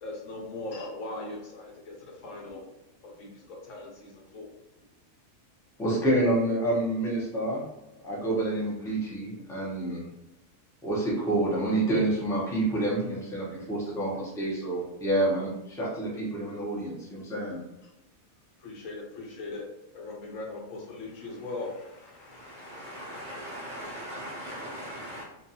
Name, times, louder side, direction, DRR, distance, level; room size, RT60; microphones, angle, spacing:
voice 1, 0.0-2.6 3.0-4.5 17.8-17.9 18.6-19.6 19.9-24.4, left 2 dB, 70° left, 1.0 m, -40 dB
voice 2, 5.8-7.6 8.0-10.0 10.8-17.6, right 1 dB, 5° left, 0.4 m, -28 dB
voice 3, 22.2-25.2, equal, 65° right, 0.4 m, -40 dB
2.4 x 2.3 x 2.7 m
omnidirectional pair, 1.4 m